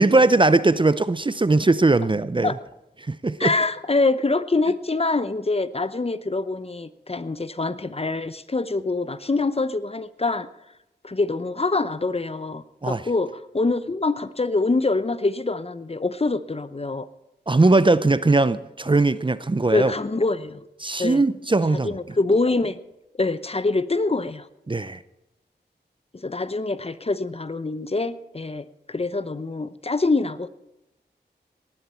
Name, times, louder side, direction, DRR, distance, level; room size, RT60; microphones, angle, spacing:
voice 1, 0.0-2.5 3.1-3.5 12.8-13.1 17.5-19.9 20.8-21.9 24.7-25.0, right 2 dB, 25° right, 0.6 m, -19 dB
voice 2, 3.4-10.5 11.0-17.1 19.7-20.7 21.0-21.2 21.8-22.8 23.2-24.5 26.1-30.5, left 3 dB, 35° left, 0.8 m, -25 dB
18.5 x 12.0 x 4.4 m
cardioid pair, 40°, 18 cm